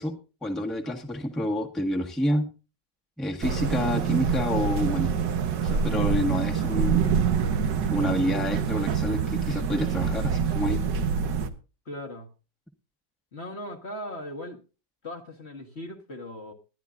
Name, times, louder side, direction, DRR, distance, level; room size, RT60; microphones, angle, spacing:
voice 1, 0.0-2.5 3.2-5.1 5.6-7.1 7.8-10.8, left 1 dB, ahead, 1.4 m, -28 dB
sound 1, 3.4-11.5, right 6 dB, 80° right, 1.7 m, -26 dB
voice 2, 11.8-12.3 13.3-14.6 15.0-16.5, left 1 dB, 40° left, 1.6 m, -38 dB
21.0 x 11.5 x 2.6 m
omnidirectional pair, 1.9 m